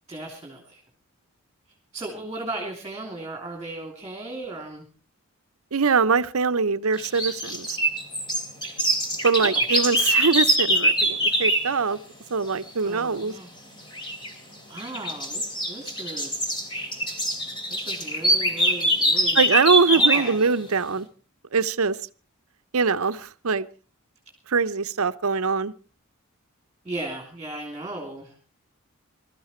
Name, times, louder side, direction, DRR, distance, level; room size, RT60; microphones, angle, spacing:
voice 1, 0.1-0.8 1.9-4.9 9.4-9.6 12.8-13.6 14.7-16.5 17.7-19.6 19.9-20.5 26.8-28.4, right 2 dB, 15° right, 2 dB, 3.1 m, -36 dB
voice 2, 5.7-7.8 9.2-12.0 12.3-13.3 19.3-21.1 21.5-22.0 22.7-23.7 24.5-25.7, right 5 dB, 75° right, 13 dB, 0.7 m, -23 dB
sound 1, 7.0-11.7 13.9-14.3 14.8-20.3, equal, 20° left, 3.0 m, -23 dB
21.0 x 13.5 x 4.4 m, 0.38 s
head